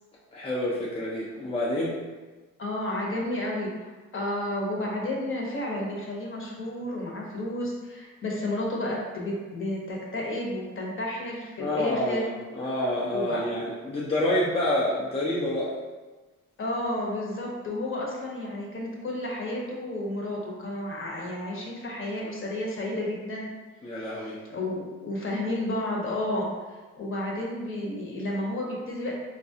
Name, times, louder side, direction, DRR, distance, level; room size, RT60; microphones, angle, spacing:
voice 1, 0.3-1.9 11.6-12.3 12.5-15.7 23.8-24.4, left 1 dB, 20° left, -6 dB, 0.6 m, -27 dB
voice 2, 2.6-12.3 13.1-13.4 16.6-23.5 24.5-26.5 27.0-29.1, left 1 dB, 40° left, -2 dB, 0.9 m, -31 dB
3.9 x 2.3 x 2.7 m, 1.3 s
cardioid pair, 90°, 30 cm